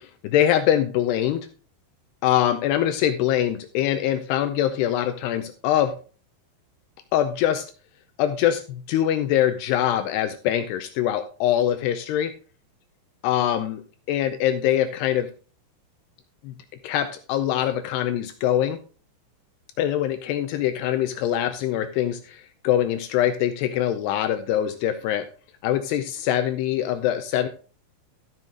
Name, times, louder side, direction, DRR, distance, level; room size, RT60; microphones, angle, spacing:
voice 1, 0.0-1.5 2.2-6.0 7.1-7.7 8.2-12.3 13.2-13.8 14.1-15.3 16.4-16.5 16.8-18.8 19.8-25.3 25.6-27.5, left 11 dB, 80° left, 9 dB, 2.5 m, -23 dB
13.5 x 6.1 x 3.7 m, 0.36 s
omnidirectional pair, 5.3 m